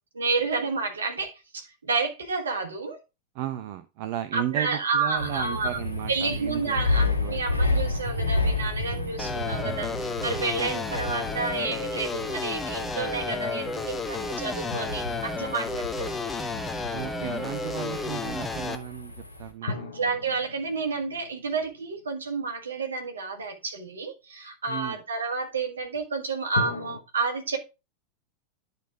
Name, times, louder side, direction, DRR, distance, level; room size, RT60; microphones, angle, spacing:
voice 1, 0.1-3.0 4.3-5.8 6.1-16.1 19.6-27.6, right 4 dB, 70° right, 1.7 m, -30 dB
voice 2, 3.3-7.5 16.9-19.9 24.7-25.0, right 12 dB, 45° right, 0.6 m, -35 dB
sound 1, 5.2-19.5, left 2 dB, 85° left, 1.9 m, -32 dB
sound 2, 9.2-18.8, left 3 dB, 15° left, 0.9 m, -32 dB
sound 3, 14.7-16.7 19.7-22.9 26.5-27.0, left 3 dB, 60° left, 1.4 m, -38 dB
10.5 x 4.1 x 4.6 m
figure-of-eight pair, 90°, 0 cm